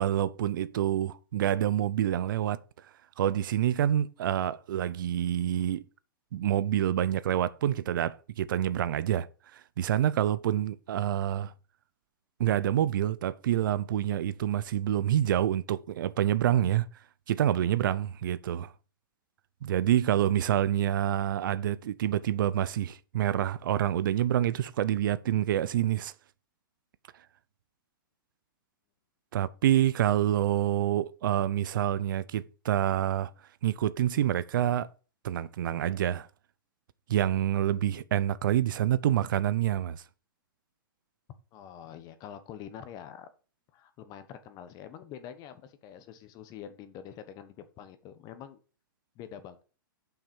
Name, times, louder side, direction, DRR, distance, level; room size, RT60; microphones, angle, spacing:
voice 1, 0.0-2.6 3.2-5.8 6.3-9.3 9.5-11.5 12.4-16.9 17.3-18.7 19.6-26.1 29.3-33.3 33.6-34.9 35.2-36.3 37.1-40.0, right 11 dB, 65° right, 0.6 m, -27 dB
voice 2, 41.5-43.3 43.7-48.6 49.1-49.6, left 9 dB, 35° left, 1.2 m, -46 dB
7.2 x 5.8 x 5.3 m
hypercardioid pair, 130°, 12 cm